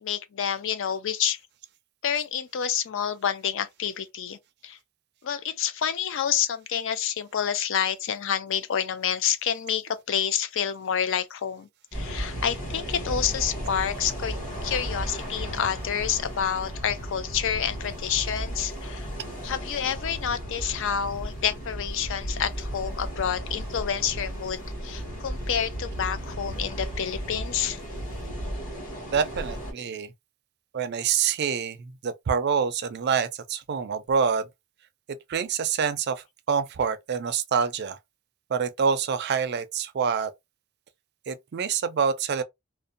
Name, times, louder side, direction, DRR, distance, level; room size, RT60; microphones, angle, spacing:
voice 1, 0.0-1.4 2.0-4.4 4.6-4.8 5.2-19.1 19.4-27.8, left 8 dB, 65° left, 0.4 m, -28 dB
sound 1, 11.9-29.7, equal, 40° left, 1.1 m, -35 dB
voice 2, 29.1-30.1 30.7-34.4 35.3-36.2 36.5-38.0 38.5-40.3 41.3-42.4, right 6 dB, 50° right, 0.4 m, -26 dB
2.5 x 2.1 x 2.5 m
head